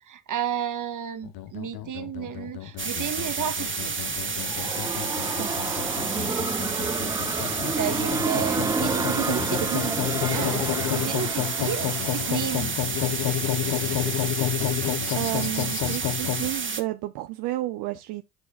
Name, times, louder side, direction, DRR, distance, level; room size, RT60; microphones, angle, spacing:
voice 1, 0.1-3.9 6.1-6.4 7.4-9.4 10.3-12.8 13.8-14.1, right 9 dB, 50° right, 1.5 m, -33 dB
sound 1, 1.2-16.5, left 12 dB, 60° left, 1.0 m, -30 dB
sound 2, 2.8-16.8, right 5 dB, 30° right, 1.8 m, -30 dB
sound 3, 4.1-12.9, right 4 dB, 10° right, 0.3 m, -31 dB
voice 2, 9.1-10.0 15.1-18.2, right 17 dB, 70° right, 0.8 m, -31 dB
13.5 x 4.7 x 2.3 m
hypercardioid pair, 55°, 41 cm